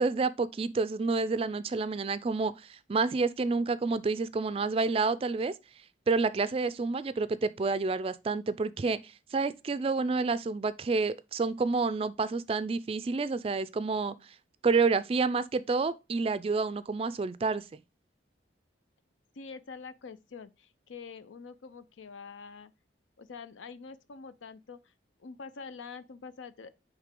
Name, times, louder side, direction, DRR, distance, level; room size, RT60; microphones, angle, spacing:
voice 1, 0.0-5.5 6.1-14.1 14.6-17.6, right 4 dB, 30° right, 0.3 m, -29 dB
voice 2, 19.3-22.7 23.2-24.9 25.2-26.7, left 5 dB, 85° left, 0.6 m, -45 dB
8.3 x 3.2 x 3.7 m
head